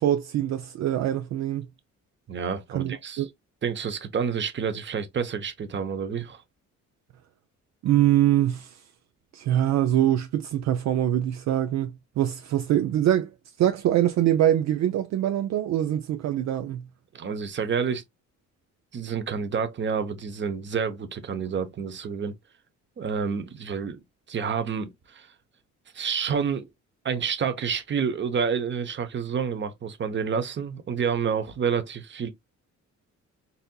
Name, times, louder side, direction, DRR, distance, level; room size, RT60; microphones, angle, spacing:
voice 1, 0.0-1.7 2.7-3.3 7.8-8.8 9.3-13.3 13.6-16.8, right 12 dB, 65° right, 0.5 m, -24 dB
voice 2, 2.3-3.3 3.6-6.4 17.1-18.0 18.9-22.3 23.0-24.0 24.3-25.3 25.9-26.7 27.0-32.3, right 6 dB, 40° right, 0.8 m, -29 dB
4.1 x 2.6 x 2.2 m
cardioid pair, 90°, 30 cm